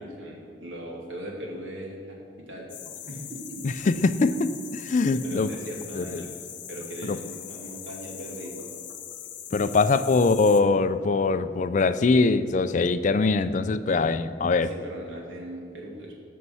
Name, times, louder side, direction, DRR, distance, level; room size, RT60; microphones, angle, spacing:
voice 1, 0.0-2.7 3.1-3.6 5.1-6.3 6.7-8.7 9.6-10.1 14.5-16.1, right 1 dB, 90° right, -1 dB, 2.5 m, -39 dB
sound 1, 2.7-10.6, left 9 dB, 70° left, 1.0 m, -41 dB
voice 2, 3.6-5.5 5.9-6.2 7.0-7.2 9.5-14.7, left 3 dB, 40° left, 12 dB, 0.4 m, -23 dB
14.0 x 5.5 x 5.6 m, 2.4 s
head